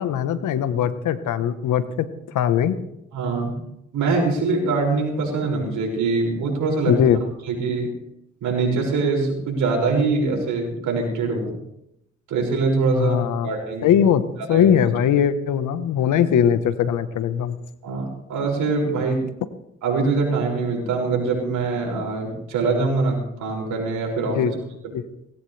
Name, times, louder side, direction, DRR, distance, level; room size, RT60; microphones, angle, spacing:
voice 1, 0.0-1.8 2.3-2.8 6.9-7.2 12.9-13.5 13.8-14.2 14.5-17.6 24.3-24.5 24.9-25.0, left 9 dB, 75° left, 12 dB, 1.3 m, -20 dB
voice 2, 3.1-3.5 3.9-7.0 7.5-7.9 8.4-11.6 12.3-13.2 13.4-13.9 14.5-14.7 17.8-19.3 19.8-24.4, right 4 dB, 80° right, 0 dB, 6.4 m, -23 dB
19.5 x 17.0 x 3.4 m, 0.82 s
supercardioid pair, 55°, 31 cm